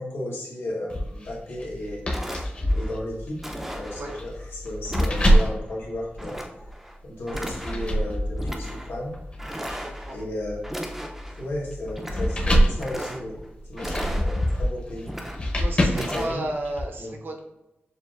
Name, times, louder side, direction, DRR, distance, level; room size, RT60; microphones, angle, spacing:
voice 1, 0.0-3.4 3.7-6.4 7.0-9.1 9.5-9.6 10.1-10.6 11.4-13.4 13.7-15.2 15.8-16.4 17.0-17.1, left 1 dB, 85° left, -4 dB, 1.2 m, -34 dB
sound 1, 0.9-6.7 7.3-16.8, equal, 35° left, 0.8 m, -26 dB
sound 2, 1.6-1.7 2.1-2.9 3.4-4.2 4.9-5.6 6.2-7.0 7.3-8.0 8.4-8.9 9.4-10.2 10.6-11.4 11.8-12.4 12.7-13.5 13.8-14.6 15.0-15.6 15.9-16.3, equal, 5° right, 0.4 m, -36 dB
voice 2, 9.7-10.2 15.6-17.4, right 1 dB, 65° right, 1 dB, 0.7 m, -33 dB
6.7 x 2.5 x 2.4 m, 0.95 s
wide cardioid pair, 170°, 4 cm